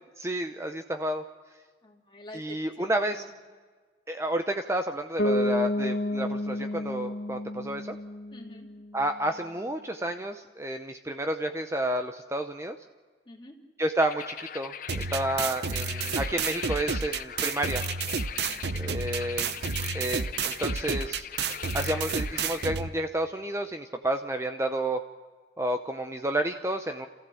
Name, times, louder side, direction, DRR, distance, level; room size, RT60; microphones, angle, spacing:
voice 1, 0.2-1.2 2.3-3.2 4.1-8.0 8.9-12.8 13.8-17.8 18.8-19.5 19.9-21.3 21.7-25.0 25.6-27.1, right 1 dB, 15° right, 6 dB, 0.7 m, -30 dB
voice 2, 1.8-3.3 8.3-8.7 13.3-13.6 18.5-19.0 19.4-19.6, left 1 dB, 25° left, 1 dB, 2.7 m, -47 dB
Bass guitar, 5.2-9.0, left 1 dB, 75° left, 1.4 m, -30 dB
sound 1, 14.0-22.6, left 9 dB, 50° left, 0.6 m, -40 dB
sound 2, 14.9-22.9, right 5 dB, 70° right, 0.8 m, -31 dB
28.0 x 15.0 x 7.7 m, 1.5 s
head